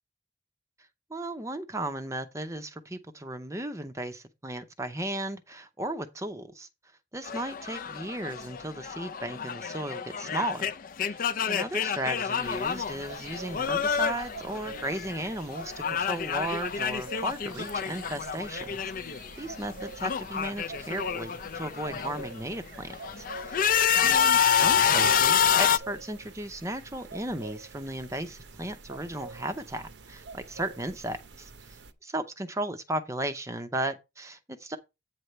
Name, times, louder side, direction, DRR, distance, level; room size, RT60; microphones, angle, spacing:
voice 1, 1.1-6.7 7.1-10.6 11.0-15.7 16.0-34.8, right 1 dB, 15° right, 0.6 m, -35 dB
sound 1, 7.3-15.3 15.5-19.3 19.6-22.2 22.8-25.8, left 8 dB, 45° left, 0.4 m, -28 dB
sound 2, 12.4-31.9, right 3 dB, 70° right, 0.8 m, -46 dB
8.7 x 3.2 x 6.6 m
head